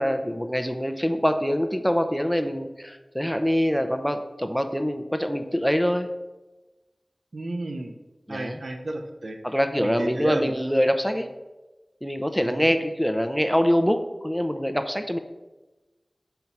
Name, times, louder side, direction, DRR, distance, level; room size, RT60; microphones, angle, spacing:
voice 1, 0.0-6.1 8.3-8.6 9.4-11.3 12.0-15.2, equal, ahead, 8 dB, 0.7 m, -24 dB
voice 2, 7.3-8.0 8.3-9.4 9.8-10.5 12.4-12.7, right 2 dB, 80° right, 4 dB, 0.8 m, -32 dB
7.2 x 4.5 x 5.4 m, 1.1 s
wide cardioid pair, 40°, 0 cm